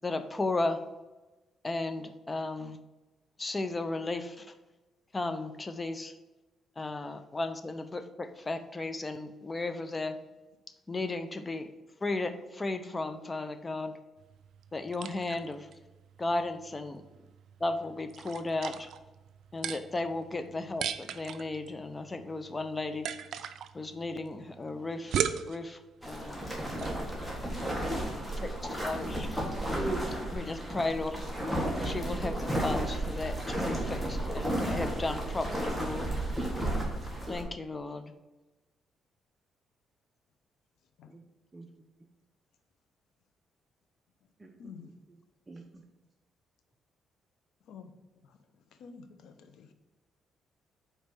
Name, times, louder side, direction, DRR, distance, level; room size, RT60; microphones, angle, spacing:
voice 1, 0.0-0.8 1.6-2.8 3.4-4.5 5.1-6.1 6.8-10.2 10.9-11.7 12.0-13.9 14.7-15.7 16.2-17.0 17.6-18.9 19.5-23.1 23.7-25.8 26.0-26.5 28.2-29.4 30.3-31.2 31.8-36.1 37.3-38.1, left 2 dB, 25° left, 9 dB, 0.6 m, -35 dB
sound 1, 14.2-27.0, right 8 dB, 70° right, 0.4 m, -39 dB
sound 2, 26.0-37.4, right 1 dB, ahead, 1.7 m, -33 dB
voice 2, 29.7-30.1 41.1-41.2 41.5-41.7 44.4-45.2 45.5-45.8, right 2 dB, 20° right, 2 dB, 0.7 m, -39 dB
voice 3, 44.6-44.9 47.7-47.9 48.8-49.7, left 6 dB, 80° left, 8 dB, 0.7 m, -47 dB
5.3 x 4.3 x 6.0 m, 1.1 s
cardioid pair, 90°, 0 cm